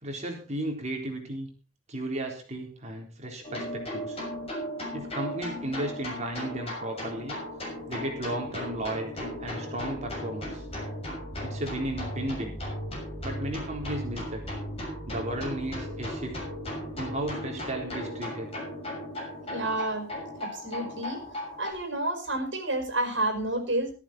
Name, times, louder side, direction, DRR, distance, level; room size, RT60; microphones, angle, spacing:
voice 1, 0.0-1.5 1.9-4.2 4.9-7.4 7.9-10.7 11.4-12.6 13.2-14.4 15.1-16.4 17.0-18.5, right 1 dB, 35° right, 1 dB, 3.8 m, -34 dB
sound 1, 3.4-21.7, equal, 30° left, 6.8 m, -36 dB
voice 2, 19.5-20.1 20.4-21.2 21.6-23.9, right 1 dB, 65° right, 6 dB, 5.2 m, -30 dB
14.0 x 13.5 x 4.3 m, 0.35 s
head